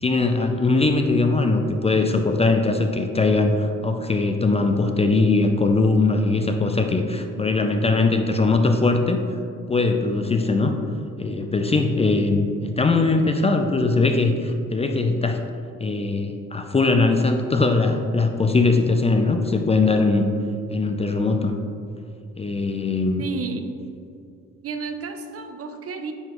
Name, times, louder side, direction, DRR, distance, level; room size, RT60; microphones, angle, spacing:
voice 1, 0.0-9.2 9.7-10.7 11.2-15.4 15.8-20.3 20.7-21.6 22.4-23.2, left 3 dB, 20° left, 5 dB, 0.4 m, -21 dB
voice 2, 23.2-23.6 24.6-26.1, right 5 dB, 50° right, 7 dB, 0.6 m, -31 dB
9.5 x 3.9 x 3.0 m, 2.4 s
cardioid pair, 90°, 30 cm